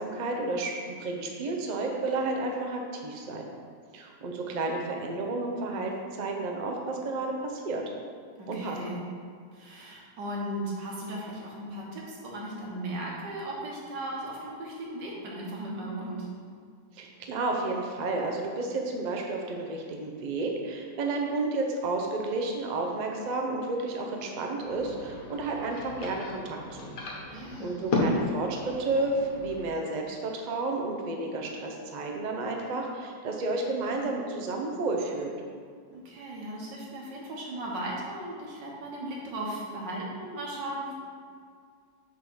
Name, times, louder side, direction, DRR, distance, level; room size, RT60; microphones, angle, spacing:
voice 1, 0.0-3.4 3.9-7.8 8.5-8.8 16.9-26.9 27.3-35.3, right 2 dB, 50° right, 1 dB, 0.5 m, -31 dB
voice 2, 8.4-9.0 9.5-16.3 27.3-27.7 35.9-40.9, right 1 dB, 85° right, -3 dB, 2.0 m, -37 dB
sound 1, 24.6-29.6, left 2 dB, 55° left, 1.5 m, -33 dB
6.2 x 3.7 x 6.2 m, 2.1 s
omnidirectional pair, 1.9 m